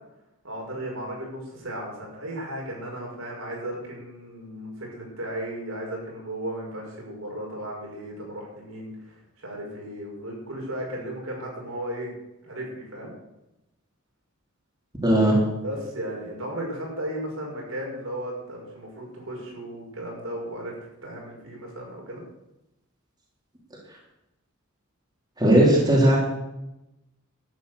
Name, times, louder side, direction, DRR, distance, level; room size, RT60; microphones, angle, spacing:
voice 1, 0.4-12.1 12.4-13.1 15.6-20.7 21.0-22.2, right 1 dB, 70° right, -2 dB, 6.1 m, -35 dB
voice 2, 15.0-15.4 25.4-26.2, right 1 dB, 20° right, -4 dB, 3.5 m, -17 dB
12.5 x 11.0 x 6.8 m, 0.92 s
head